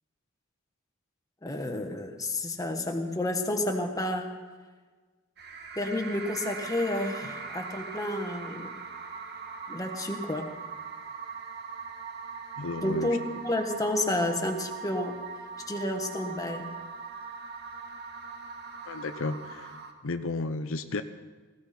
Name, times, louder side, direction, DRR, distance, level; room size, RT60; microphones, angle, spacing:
voice 1, 1.4-4.3 5.8-8.7 9.7-10.5 12.8-15.2 15.7-16.7, left 1 dB, 15° left, 4 dB, 1.5 m, -30 dB
sound 1, 5.4-19.9, right 5 dB, 50° right, 1.6 m, -41 dB
voice 2, 12.6-13.1 18.9-19.7 20.0-21.0, left 3 dB, 65° left, 9 dB, 0.7 m, -33 dB
19.5 x 16.0 x 4.4 m, 1.4 s
head